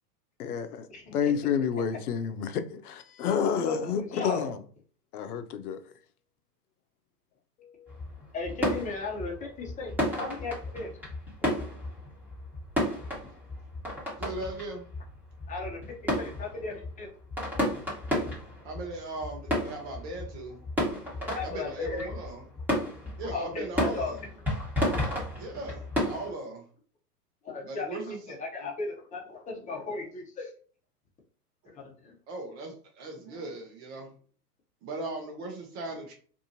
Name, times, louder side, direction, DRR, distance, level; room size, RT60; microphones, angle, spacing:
voice 1, 0.4-0.9 1.1-4.6 5.1-5.8 7.6-8.0, left 7 dB, 65° left, 0.6 m, -30 dB
voice 2, 3.6-4.5 8.3-10.9 15.5-17.1 21.3-22.1 23.3-24.1 27.4-30.5 31.8-32.1, left 3 dB, 15° left, 0.9 m, -36 dB
sound 1, 7.9-26.3, left 1 dB, 5° right, 1.2 m, -33 dB
voice 3, 14.2-14.9 18.6-20.7 21.0-22.5 23.2-24.2 25.4-26.7 27.6-28.3 28.6-28.7 31.6-31.7 32.3-34.1 34.8-36.1, right 2 dB, 45° right, 0.8 m, -38 dB
2.6 x 2.5 x 2.7 m
hypercardioid pair, 105°, 48 cm